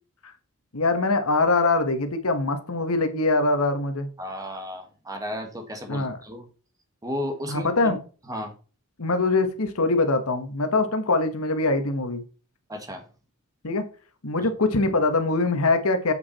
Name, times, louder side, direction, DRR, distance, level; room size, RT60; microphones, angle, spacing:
voice 1, 0.7-4.1 5.9-6.2 7.5-8.0 9.0-12.2 13.6-13.8 14.2-16.1, left 3 dB, 70° left, 8 dB, 1.3 m, -23 dB
voice 2, 4.2-6.5 7.0-7.9 8.3-8.5 12.7-13.0, left 1 dB, 15° right, 5 dB, 1.6 m, -33 dB
8.1 x 6.0 x 4.1 m, 0.36 s
head